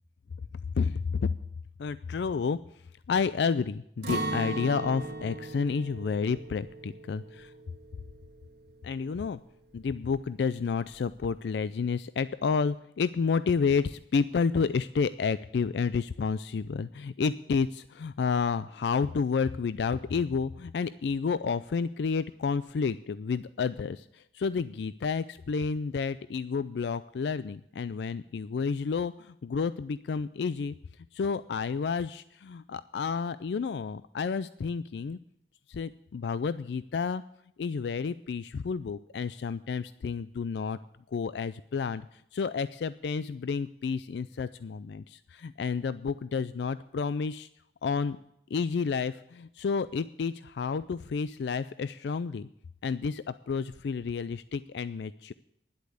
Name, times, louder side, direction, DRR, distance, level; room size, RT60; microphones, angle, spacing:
voice 1, 0.8-1.3 1.8-2.6 3.1-7.5 8.8-9.4 9.7-30.7 31.1-35.2 35.7-37.2 37.6-40.8 41.1-42.1 42.3-47.5 47.8-48.2 48.5-52.5 52.8-55.3, left 5 dB, 70° left, 15 dB, 0.4 m, -30 dB
Acoustic guitar, 4.0-9.9 10.2-10.4 10.9-11.4, right 2 dB, 65° right, 1.9 m, -38 dB
10.5 x 8.2 x 7.9 m, 0.78 s
head